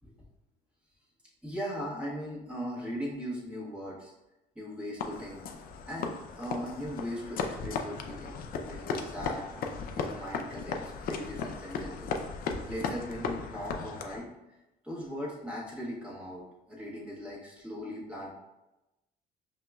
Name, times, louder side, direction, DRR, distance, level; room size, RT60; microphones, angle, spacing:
voice 1, 1.4-4.1 4.5-5.4 5.8-8.4 8.6-9.5 9.9-12.4 12.7-14.3 14.8-18.3, equal, 5° right, -5 dB, 1.3 m, -39 dB
sound 1, 5.0-14.3, left 5 dB, 60° left, 0.5 m, -36 dB
5.3 x 2.8 x 2.3 m, 0.99 s
cardioid pair, 110°, 17 cm